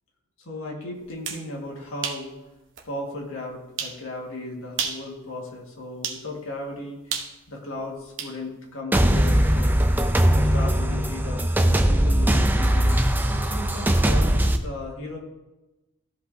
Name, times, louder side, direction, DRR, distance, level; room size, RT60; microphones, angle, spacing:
voice 1, 0.4-2.3 2.9-7.2 7.5-9.8 10.3-12.9 13.3-15.2, left 2 dB, 70° left, -1 dB, 1.8 m, -36 dB
sound 1, 1.0-1.5 2.0-2.3 2.8-2.9 3.8-4.0 4.7-5.1 6.0-6.2 7.1-8.4, right 6 dB, 55° right, 1.0 m, -31 dB
sound 2, 8.9-14.6, right 1 dB, 10° right, 0.4 m, -20 dB
14.0 x 5.3 x 2.8 m, 1.0 s
head